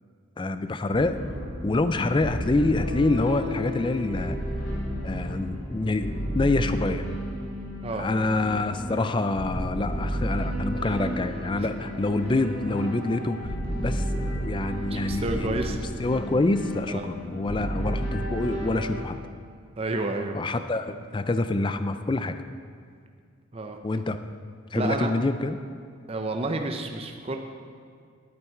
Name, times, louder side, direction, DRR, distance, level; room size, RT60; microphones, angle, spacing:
voice 1, 0.4-1.1 1.6-4.4 5.0-7.1 8.0-13.5 13.8-19.2 20.3-22.4 23.8-24.2 24.7-25.6, left 2 dB, 25° left, 10 dB, 0.4 m, -26 dB
sound 1, 0.9-19.0, equal, 70° left, 2.9 m, -32 dB
voice 2, 14.9-15.9 16.9-17.1 19.8-20.4 23.5-23.8 24.7-25.1 26.1-27.4, right 2 dB, 30° right, 4 dB, 0.6 m, -30 dB
11.0 x 9.3 x 4.6 m, 2.2 s
head